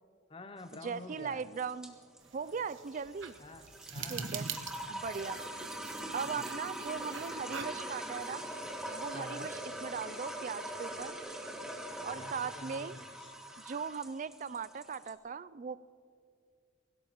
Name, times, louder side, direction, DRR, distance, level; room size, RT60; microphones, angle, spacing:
voice 1, 0.3-1.5 3.4-4.4 6.3-6.5 9.1-9.5 12.1-13.3, left 2 dB, 25° left, 9 dB, 0.6 m, -49 dB
sound 1, 0.6-15.1, right 1 dB, 5° right, 1.4 m, -42 dB
voice 2, 0.8-2.0 2.3-3.4 4.1-4.5 4.9-5.4 6.1-8.5 9.0-11.2 12.0-13.0 13.6-15.8, right 6 dB, 40° right, 16 dB, 0.3 m, -39 dB
sound 2, 2.2-9.7, right 6 dB, 75° right, 1.0 m, -45 dB
24.5 x 16.5 x 3.0 m, 2.3 s
head